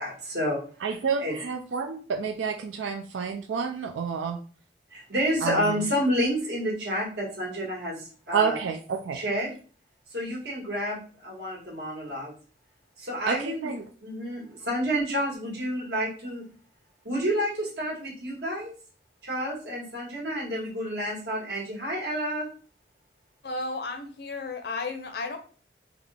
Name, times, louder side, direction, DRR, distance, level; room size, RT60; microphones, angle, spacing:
voice 1, 0.0-0.6 1.2-1.4 4.9-8.6 9.1-9.5 10.1-12.3 13.0-16.5 17.0-18.7 19.2-22.5, equal, 70° right, 1.6 m, -29 dB
voice 2, 0.8-4.4 5.4-5.6 8.3-9.2 13.3-13.8, right 6 dB, 90° right, 0.4 m, -29 dB
voice 3, 23.4-25.4, left 3 dB, 60° left, 0.6 m, -33 dB
3.6 x 2.4 x 3.4 m
head